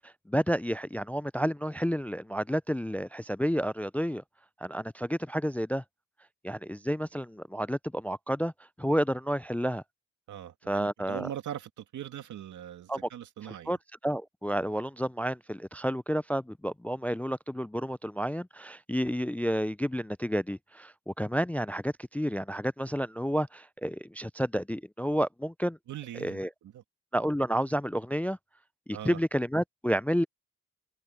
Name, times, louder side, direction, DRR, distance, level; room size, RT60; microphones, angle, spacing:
voice 1, 0.0-4.2 4.6-5.8 6.4-8.5 8.8-9.8 10.7-11.3 12.9-13.0 13.4-13.8 14.0-25.8 26.2-26.5 27.1-28.4 28.9-30.2, equal, 5° left, 0.3 m, -30 dB
voice 2, 10.3-13.8 25.9-26.8 28.9-29.2, right 11 dB, 85° right, 2.1 m, -41 dB
cardioid pair, 80°, 29 cm